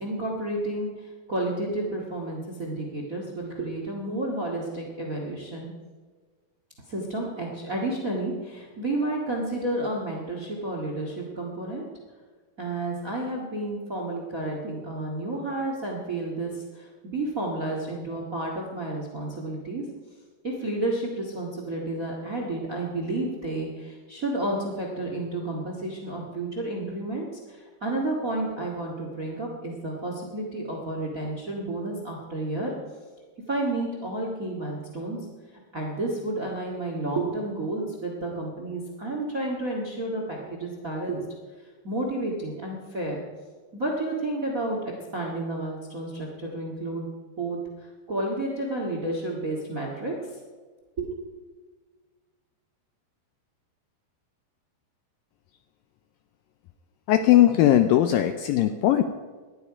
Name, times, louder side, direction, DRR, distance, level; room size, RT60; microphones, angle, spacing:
voice 1, 0.0-5.7 6.9-11.8 12.6-19.8 20.4-32.7 33.5-35.2 35.7-41.2 41.8-43.2 43.7-44.8 45.1-47.1 47.4-50.1 51.0-51.2, right 2 dB, 40° right, 1 dB, 1.2 m, -31 dB
voice 2, 57.1-59.0, left 12 dB, 85° left, 9 dB, 2.1 m, -19 dB
18.5 x 12.5 x 4.9 m, 1.4 s
omnidirectional pair, 4.7 m